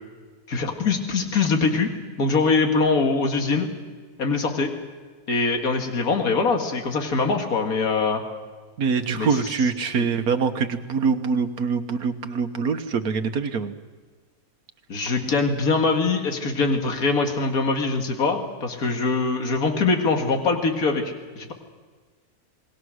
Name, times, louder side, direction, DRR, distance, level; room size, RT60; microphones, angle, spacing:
voice 1, 0.5-1.9 2.2-3.7 4.2-4.7 5.3-8.2 9.2-9.3 10.0-10.1 14.9-21.5, left 4 dB, 70° left, 3 dB, 2.4 m, -23 dB
voice 2, 8.8-13.7, right 5 dB, 80° right, 8 dB, 1.6 m, -24 dB
27.5 x 20.0 x 6.4 m, 1.5 s
omnidirectional pair, 1.6 m